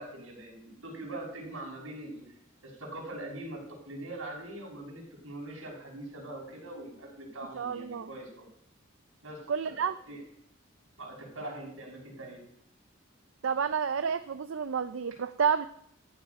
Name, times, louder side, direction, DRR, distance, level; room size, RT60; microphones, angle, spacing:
voice 1, 0.0-2.2 2.6-3.6 3.9-8.5 9.2-9.4 9.6-10.2 11.0-12.4, right 1 dB, 85° right, -2 dB, 6.1 m, -42 dB
voice 2, 7.5-8.1 9.5-10.0 13.4-15.7, right 6 dB, 70° right, 11 dB, 0.5 m, -30 dB
14.5 x 10.5 x 5.3 m, 0.73 s
head